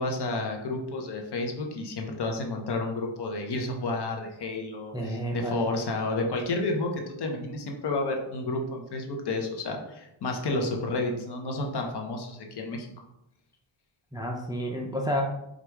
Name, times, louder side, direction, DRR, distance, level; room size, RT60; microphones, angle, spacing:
voice 1, 0.0-12.9, left 2 dB, 55° left, 2 dB, 0.8 m, -31 dB
voice 2, 4.9-5.8 14.1-15.2, equal, 10° right, 0 dB, 0.3 m, -30 dB
4.6 x 2.5 x 3.3 m, 0.85 s
wide cardioid pair, 125°, 48 cm